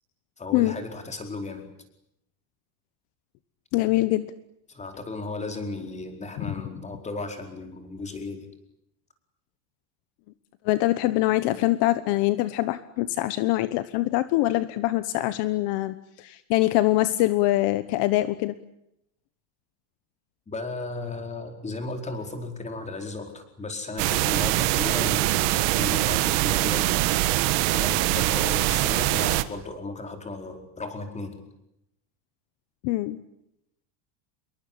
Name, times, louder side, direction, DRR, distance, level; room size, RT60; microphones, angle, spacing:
voice 1, 0.4-1.7 4.7-8.5 20.5-27.0 27.7-31.4, left 3 dB, 15° left, 5 dB, 4.6 m, -35 dB
voice 2, 3.7-4.3 10.6-18.6 32.8-33.2, left 17 dB, 55° left, 13 dB, 1.3 m, -24 dB
sound 1, 24.0-29.4, right 17 dB, 60° right, 1.8 m, -23 dB
27.5 x 22.5 x 8.8 m, 0.81 s
cardioid pair, 160°, 50 cm